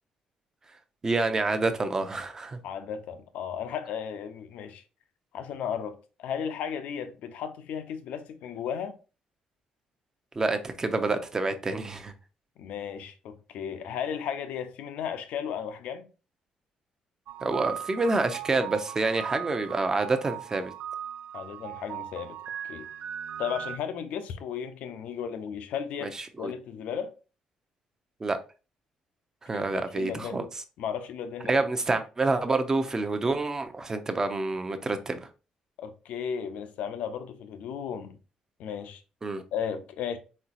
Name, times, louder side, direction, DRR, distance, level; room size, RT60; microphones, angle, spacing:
voice 1, 1.0-2.6 10.3-12.1 17.4-20.7 26.0-26.5 28.2-28.4 29.4-30.5 31.4-35.3 39.2-39.4, right 3 dB, 25° right, 0.7 m, -28 dB
voice 2, 2.6-4.8 5.3-8.9 12.6-16.1 21.3-22.4 22.7-22.9 23.4-26.1 26.4-27.1 29.5-29.6 29.9-30.4 30.8-31.6 35.8-38.2 38.6-39.0 39.5-40.2, left 8 dB, 80° left, 0.6 m, -35 dB
sound 1, 17.3-23.8, right 10 dB, 85° right, 0.4 m, -39 dB
4.3 x 3.9 x 2.5 m
cardioid pair, 105°, 2 cm